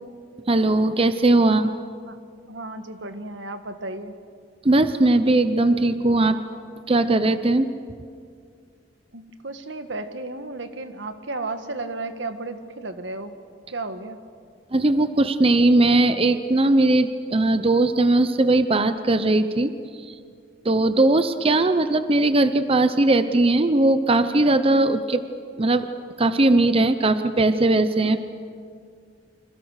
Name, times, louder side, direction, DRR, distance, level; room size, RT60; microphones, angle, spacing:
voice 1, 0.5-1.7 4.6-6.4 6.9-7.7 14.7-19.7 20.0-20.2 20.6-25.2 25.6-25.9 26.2-28.2, right 2 dB, 30° right, 10 dB, 0.8 m, -19 dB
voice 2, 2.5-4.1 9.1-13.3 13.7-14.2, right 2 dB, 85° right, 8 dB, 1.7 m, -33 dB
29.0 x 26.0 x 6.6 m, 2.2 s
head